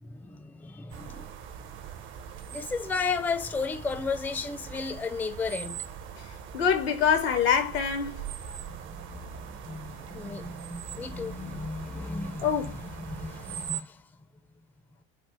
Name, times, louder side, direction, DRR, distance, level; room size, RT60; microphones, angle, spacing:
voice 1, 0.0-1.3 2.5-5.8 8.7-14.0, left 4 dB, 5° left, 0.3 m, -34 dB
sound 1, 0.9-13.8, right 8 dB, 40° right, 0.5 m, -41 dB
voice 2, 6.5-8.3 12.4-12.8, left 7 dB, 85° left, 0.9 m, -25 dB
3.6 x 2.0 x 2.9 m
hypercardioid pair, 85°, 30 cm